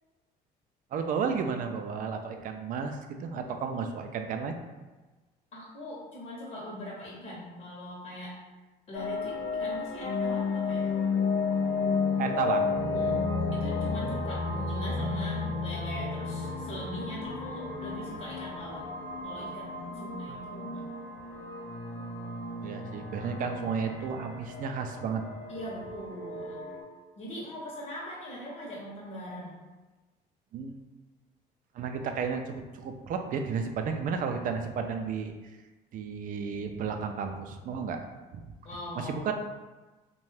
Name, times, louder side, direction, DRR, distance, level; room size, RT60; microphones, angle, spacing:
voice 1, 0.9-4.6 12.2-12.7 20.3-20.4 22.6-25.2 30.5-30.8 31.7-35.3 35.9-38.0 38.3-38.4 39.0-39.3, right 5 dB, 50° right, 5 dB, 0.4 m, -32 dB
voice 2, 5.5-8.4 8.9-10.9 12.9-18.9 19.2-20.9 25.5-26.7 27.2-29.6 38.6-39.3, left 1 dB, 45° left, -5 dB, 0.8 m, -41 dB
sound 1, 8.9-26.8, left 4 dB, 75° left, 0.7 m, -32 dB
2.6 x 2.2 x 3.2 m, 1.2 s
supercardioid pair, 95°, 18 cm